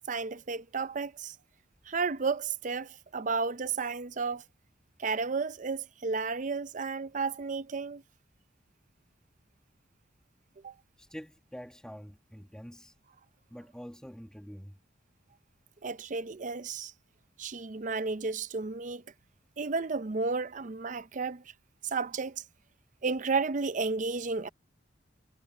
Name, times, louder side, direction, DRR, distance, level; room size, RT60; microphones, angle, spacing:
voice 1, 0.1-1.4 1.9-4.4 5.0-8.0 10.6-10.7 15.8-16.9 17.4-19.0 19.6-21.4 21.8-22.4 23.0-24.5, right 4 dB, 40° right, 0.5 m, -32 dB
voice 2, 11.0-12.9 13.5-14.8, equal, 5° left, 1.7 m, -46 dB
head